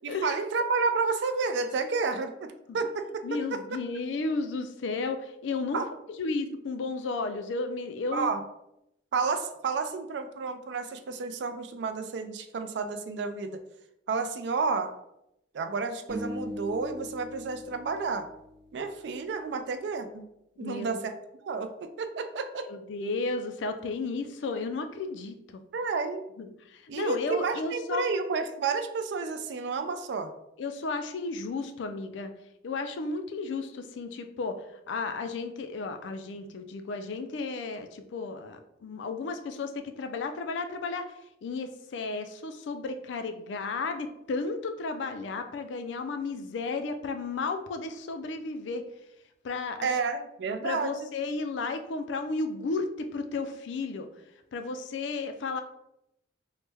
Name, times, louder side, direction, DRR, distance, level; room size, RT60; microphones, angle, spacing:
voice 1, 0.0-3.6 5.7-5.9 8.1-8.4 9.1-13.6 14.1-14.9 15.5-18.3 18.7-20.2 20.6-21.1 21.4-22.7 25.7-26.2 26.9-30.3 49.8-51.1, right 4 dB, 70° right, 8 dB, 0.3 m, -31 dB
voice 2, 3.2-5.8 6.2-8.3 20.6-21.0 22.7-25.4 26.4-28.0 30.6-32.3 32.6-41.1 41.4-48.9 49.4-49.9 50.6-54.1 54.5-55.6, left 3 dB, 85° left, 8 dB, 0.4 m, -33 dB
sound 1, 16.1-19.3, left 1 dB, 50° right, 0.8 m, -40 dB
3.1 x 2.1 x 3.3 m, 0.83 s
head